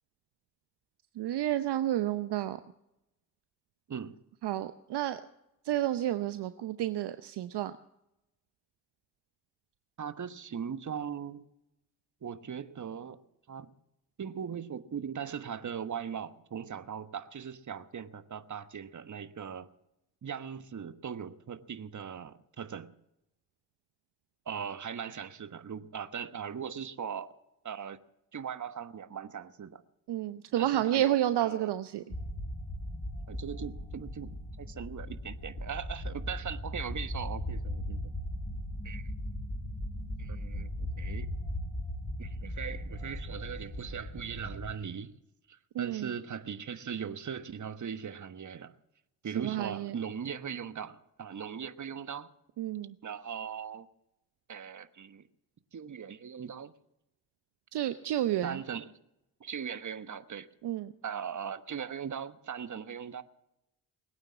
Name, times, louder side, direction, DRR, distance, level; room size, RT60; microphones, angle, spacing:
voice 1, 1.2-2.6 4.4-5.2 5.6-7.7 30.1-32.1 45.7-46.1 49.4-49.9 52.6-53.0 57.7-58.6 60.6-60.9, right 12 dB, 60° right, 0.8 m, -30 dB
voice 2, 10.0-11.5 12.2-13.2 13.5-13.7 14.2-19.7 20.2-23.0 24.5-27.3 27.6-28.0 28.3-29.8 30.6-31.7 33.3-34.3 34.6-38.1 38.8-39.1 40.2-41.3 42.2-45.2 45.5-48.7 49.2-52.3 53.0-53.9 54.5-55.3 55.7-56.7 58.4-59.0 59.4-60.5 61.0-63.2, right 7 dB, 40° right, 1.3 m, -39 dB
sound 1, 32.1-44.7, left 1 dB, 30° left, 4.6 m, -38 dB
21.0 x 9.0 x 7.4 m
hypercardioid pair, 40°, 46 cm